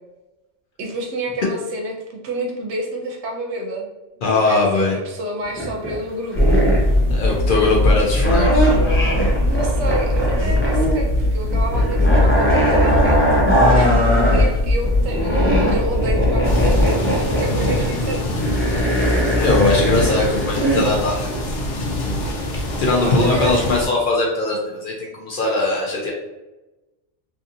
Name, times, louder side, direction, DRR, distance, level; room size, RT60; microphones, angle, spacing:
voice 1, 0.8-3.9 4.3-6.4 9.5-13.4 13.7-18.3 22.9-23.7, right 1 dB, 75° right, 1 dB, 0.9 m, -29 dB
voice 2, 4.2-4.9 7.1-8.7 19.3-21.3 22.8-26.1, left 2 dB, 60° left, -3 dB, 0.6 m, -20 dB
sound 1, 5.4-6.0 6.3-6.9 8.2-11.0 11.2-14.4 14.8-20.9 21.3-21.4, equal, 15° left, 0.4 m, -20 dB
sound 2, 6.3-16.8, left 1 dB, 30° right, 0.7 m, -19 dB
sound 3, 16.4-23.9, left 1 dB, 80° left, 0.9 m, -25 dB
2.6 x 2.6 x 2.5 m, 1.1 s
omnidirectional pair, 1.2 m